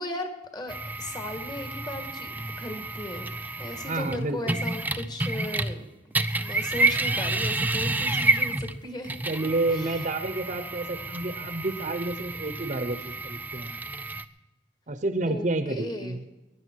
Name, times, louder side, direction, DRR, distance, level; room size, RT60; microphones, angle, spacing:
voice 1, 0.0-3.3 3.6-5.9 6.4-9.1 9.7-10.0 15.3-16.2, left 1 dB, 25° left, 6 dB, 1.8 m, -37 dB
sound 1, 0.7-5.8 6.1-14.2, right 2 dB, 10° right, 0.5 m, -29 dB
voice 2, 3.9-4.6 9.3-13.8 14.9-16.2, right 2 dB, 45° right, 10 dB, 0.9 m, -30 dB
20.5 x 10.5 x 4.7 m, 1.0 s
head